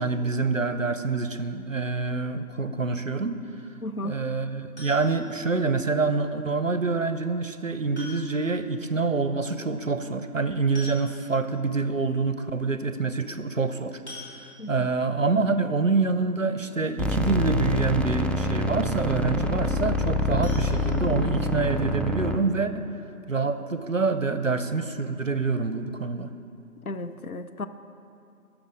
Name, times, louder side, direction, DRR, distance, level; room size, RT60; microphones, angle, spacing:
voice 1, 0.0-3.4 4.0-14.0 14.3-14.4 14.7-22.8 23.3-26.3, right 4 dB, 60° right, 10 dB, 0.5 m, -26 dB
voice 2, 3.8-4.2 14.6-14.9 26.9-27.7, left 2 dB, 70° left, 10 dB, 0.6 m, -34 dB
sound 1, 4.8-5.4 6.9-7.0 7.9-8.6 8.9-9.0 9.3-9.4 10.4-10.5 10.8-11.5 12.0-12.1 12.5-12.6 14.1-14.9 20.4-21.6 22.0-22.1 22.5-22.6 23.0-23.1, left 2 dB, 45° left, 2.5 m, -45 dB
sound 2, 17.0-22.4, left 1 dB, 5° left, 0.4 m, -26 dB
12.0 x 6.2 x 5.0 m, 2.6 s
figure-of-eight pair, 180°, 45 cm